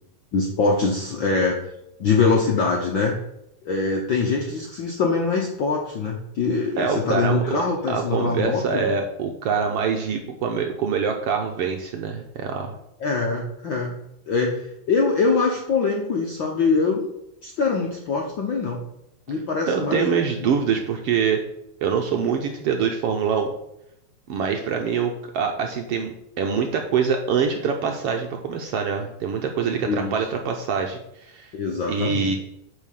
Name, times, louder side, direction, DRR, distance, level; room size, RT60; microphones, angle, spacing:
voice 1, 0.3-1.5 2.0-3.2 3.6-8.9 13.0-13.9 14.3-17.1 17.4-18.8 19.3-20.5 29.9-30.2 31.5-32.3, left 4 dB, 65° left, 0 dB, 1.2 m, -23 dB
voice 2, 6.8-12.7 19.7-21.4 21.8-23.5 24.3-31.5 31.9-32.4, right 6 dB, 70° right, 3 dB, 1.5 m, -25 dB
8.9 x 4.5 x 6.5 m, 0.82 s
omnidirectional pair, 3.4 m